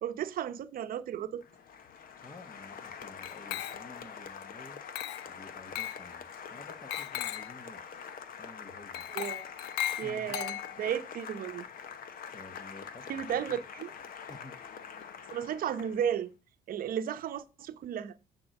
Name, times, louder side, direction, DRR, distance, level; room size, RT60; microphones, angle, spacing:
voice 1, 0.0-1.4 9.1-9.5 10.0-11.7 13.1-13.9 15.3-16.3 16.7-18.2, right 9 dB, 55° right, 0.8 m, -34 dB
Applause, 1.4-16.2, left 7 dB, 60° left, 1.1 m, -45 dB
voice 2, 2.2-4.8 5.3-7.9 8.4-9.1 10.0-10.3 10.8-10.9 11.9-13.6 14.3-14.5, left 2 dB, 25° left, 1.3 m, -52 dB
Glass, 3.2-4.1 4.9-5.3 5.7-6.0 6.9-7.6 8.9-11.0, left 12 dB, 80° left, 0.5 m, -37 dB
9.6 x 4.5 x 6.5 m
cardioid pair, 110°, 17 cm